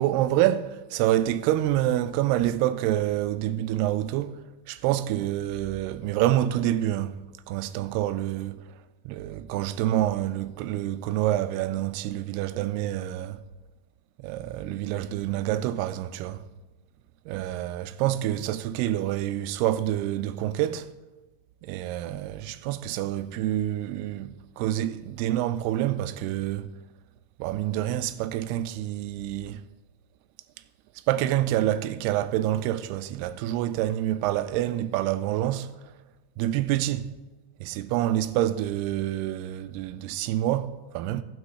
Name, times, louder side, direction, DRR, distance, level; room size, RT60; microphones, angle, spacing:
voice 1, 0.0-4.4 4.7-7.2 7.5-8.6 9.1-13.4 14.2-16.4 17.3-20.9 21.6-26.7 27.4-29.6 31.1-35.7 36.4-37.1 37.6-41.2, right 13 dB, 85° right, 2.6 m, -27 dB
15.0 x 9.3 x 4.8 m
omnidirectional pair, 4.7 m